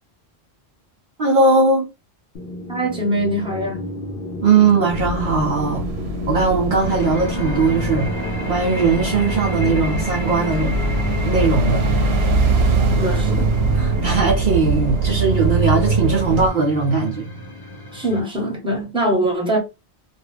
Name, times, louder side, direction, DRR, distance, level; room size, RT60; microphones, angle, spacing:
voice 1, 1.2-1.9 4.4-5.8 6.3-8.1 8.5-10.7 11.2-11.8 13.0-13.2 13.7-17.3, right 4 dB, 60° right, 0.7 m, -19 dB
sound 1, 2.3-14.5, left 1 dB, 75° left, 0.9 m, -34 dB
voice 2, 2.7-3.8 13.0-13.5 17.9-19.6, right 1 dB, 5° right, 1.0 m, -22 dB
sound 2, 4.9-16.5, right 3 dB, 90° right, 0.8 m, -22 dB
sound 3, 6.8-18.2, equal, 25° left, 0.6 m, -30 dB
2.5 x 2.3 x 3.1 m
omnidirectional pair, 1.0 m